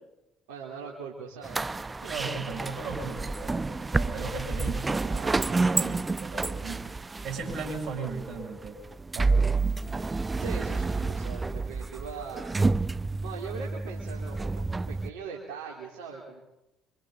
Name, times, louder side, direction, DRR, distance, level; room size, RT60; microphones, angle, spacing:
voice 1, 0.5-2.1 10.4-12.5 13.2-16.4, right 6 dB, 85° right, -2 dB, 3.8 m, -41 dB
sound 1, 1.4-15.1, right 3 dB, 25° right, 0.8 m, -29 dB
voice 2, 2.1-6.9 7.2-8.8 9.1-9.3, right 4 dB, 60° right, 2 dB, 7.9 m, -37 dB
27.5 x 26.5 x 4.0 m, 0.91 s
hypercardioid pair, 65°, 0 cm